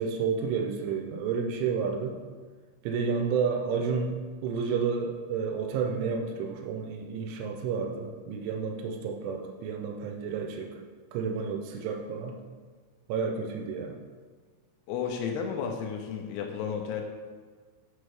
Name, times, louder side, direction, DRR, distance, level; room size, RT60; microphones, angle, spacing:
voice 1, 0.0-2.2 2.8-10.8 11.1-12.4 13.1-14.0, right 5 dB, 80° right, 4 dB, 2.8 m, -31 dB
voice 2, 14.9-17.0, left 7 dB, 90° left, 2 dB, 3.4 m, -32 dB
7.1 x 6.1 x 3.3 m, 1.5 s
omnidirectional pair, 6.0 m